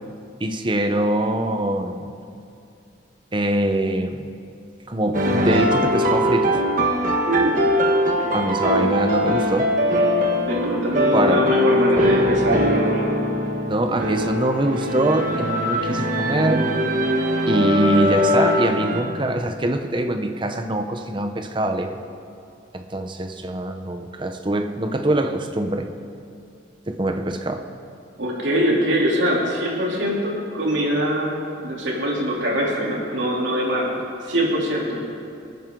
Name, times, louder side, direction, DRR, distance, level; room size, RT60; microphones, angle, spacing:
voice 1, 0.4-2.1 3.3-4.3 4.9-6.6 8.3-9.7 11.1-11.5 13.7-16.7 17.5-22.0 22.7-25.9 26.9-27.6, right 1 dB, 25° right, 6 dB, 0.7 m, -23 dB
sound 1, 5.1-19.0, equal, 45° right, 1.3 m, -21 dB
voice 2, 7.2-7.7 8.0-8.3 8.7-8.9 10.4-13.1 28.2-33.9 34.3-35.0, equal, 80° right, -4 dB, 3.2 m, -23 dB
27.5 x 9.4 x 3.8 m, 2.5 s
head